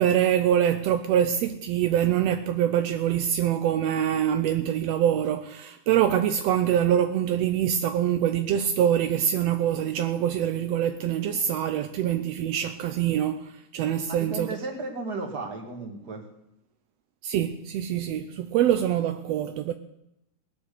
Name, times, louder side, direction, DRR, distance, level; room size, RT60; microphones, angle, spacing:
voice 1, 0.0-14.5 17.2-19.7, right 10 dB, 80° right, 1.5 m, -24 dB
voice 2, 14.0-16.2, right 3 dB, 35° right, 2.3 m, -34 dB
19.0 x 9.4 x 6.8 m
omnidirectional pair, 3.6 m